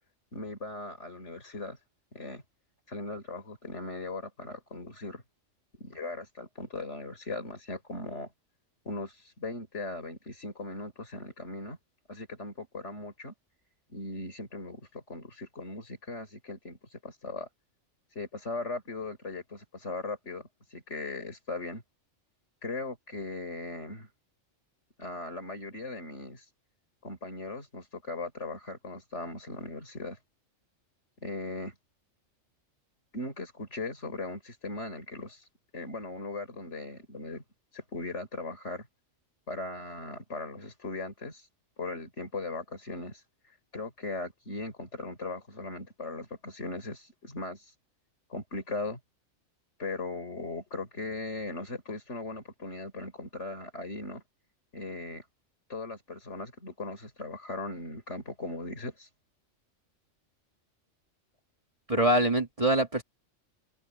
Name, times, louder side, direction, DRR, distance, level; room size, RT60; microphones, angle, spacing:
voice 1, 0.3-1.8 2.1-2.4 2.9-5.2 5.8-8.3 8.8-11.8 12.1-13.3 13.9-17.5 18.1-21.8 22.6-24.1 25.0-26.4 27.0-30.2 31.2-31.7 33.1-35.4 35.7-37.4 37.7-38.9 39.5-41.5 41.8-43.2 43.7-47.6 48.3-49.0 49.8-54.2 54.7-55.2 55.7-59.1, left 2 dB, 65° left, 4.8 m, -38 dB
voice 2, 61.9-63.0, right 1 dB, 30° right, 1.8 m, -24 dB
omnidirectional pair, 1.3 m